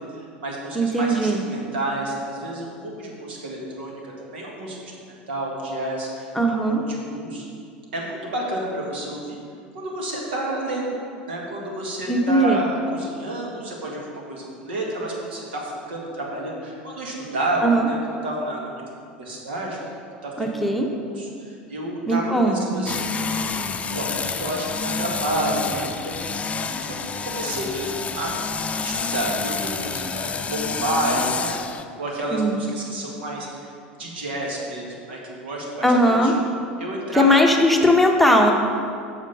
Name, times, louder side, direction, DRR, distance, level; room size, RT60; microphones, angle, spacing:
voice 1, 0.1-4.9 5.3-7.4 7.9-9.4 9.7-11.0 11.3-18.7 19.2-19.8 20.2-20.5 21.0-23.0 23.9-26.3 26.5-28.3 28.8-31.5 32.0-33.7 34.0-36.3 36.8-37.4, right 1 dB, 80° right, -2 dB, 2.1 m, -30 dB
voice 2, 0.7-1.4 6.3-6.8 12.1-12.6 17.6-17.9 20.4-20.9 22.1-22.9 32.3-32.6 35.8-36.3 37.2-38.5, equal, ahead, 1 dB, 1.1 m, -19 dB
sound 1, 22.9-31.8, left 5 dB, 25° left, 0.6 m, -28 dB
8.8 x 6.5 x 5.4 m, 2.4 s
hypercardioid pair, 85°, 6 cm